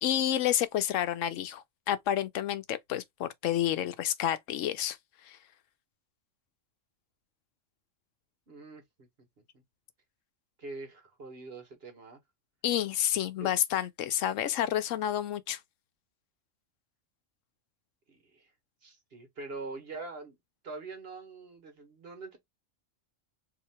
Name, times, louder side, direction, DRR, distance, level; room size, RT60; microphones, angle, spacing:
voice 1, 0.0-5.0 5.2-5.4 12.6-15.6, left 11 dB, 85° left, 1.0 m, -29 dB
voice 2, 8.5-9.3 10.6-12.2 13.4-13.5 18.1-18.5 18.8-20.3 20.6-22.4, right 3 dB, 55° right, 1.5 m, -44 dB
2.9 x 2.8 x 4.2 m
omnidirectional pair, 1.3 m